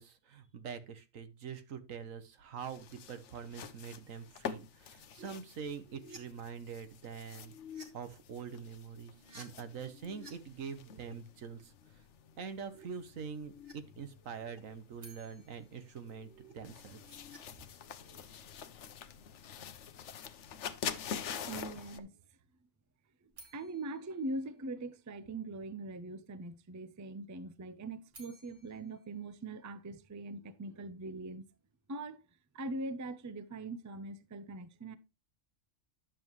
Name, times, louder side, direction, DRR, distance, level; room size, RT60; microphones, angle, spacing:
voice 1, 0.0-7.5 7.9-12.0 12.4-17.2, right 6 dB, 85° right, 1.5 m, -45 dB
sound 1, 2.6-22.0, left 8 dB, 65° left, 1.0 m, -47 dB
sound 2, 5.2-5.3 5.6-6.2 7.2-7.9 9.1-10.3 10.6-11.1 12.2-13.7 14.0-14.6 15.9-17.4 17.7-18.2, left 2 dB, 45° right, 2.0 m, -54 dB
sound 3, 15.0-17.1 23.3-25.5 27.8-30.3, right 3 dB, 70° right, 2.7 m, -61 dB
voice 2, 21.5-22.2 23.2-31.5 31.9-32.3 32.5-35.0, right 2 dB, 25° right, 0.4 m, -42 dB
10.5 x 7.4 x 3.1 m
omnidirectional pair, 1.3 m